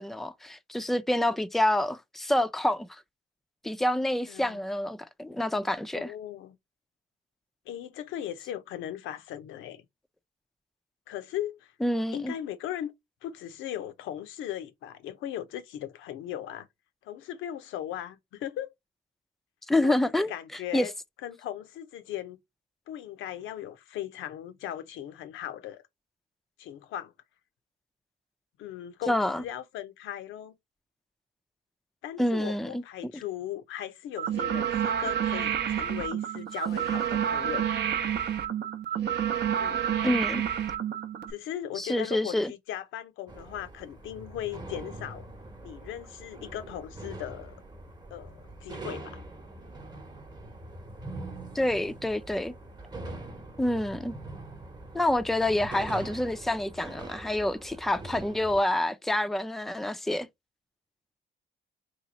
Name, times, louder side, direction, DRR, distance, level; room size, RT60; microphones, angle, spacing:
voice 1, 0.0-3.0 3.6-6.1 11.8-12.3 19.7-20.3 20.7-20.9 29.1-29.4 32.2-33.1 40.0-40.4 41.8-42.5 51.5-52.5 53.6-54.1 54.9-60.3, left 1 dB, ahead, 0.4 m, -27 dB
voice 2, 4.3-4.6 5.9-6.5 7.7-9.8 11.1-11.7 12.1-12.9 13.2-16.7 17.0-18.7 19.8-20.0 20.3-20.9 21.2-22.4 22.9-25.8 26.6-27.1 28.6-30.5 32.0-37.7 39.6-39.9 41.3-45.2 45.6-47.6 48.1-49.2, left 11 dB, 90° left, 0.6 m, -38 dB
sound 1, 34.2-41.3, right 9 dB, 60° right, 0.6 m, -29 dB
sound 2, 43.3-58.6, right 2 dB, 20° right, 0.9 m, -43 dB
2.9 x 2.3 x 4.0 m
cardioid pair, 90°, 20 cm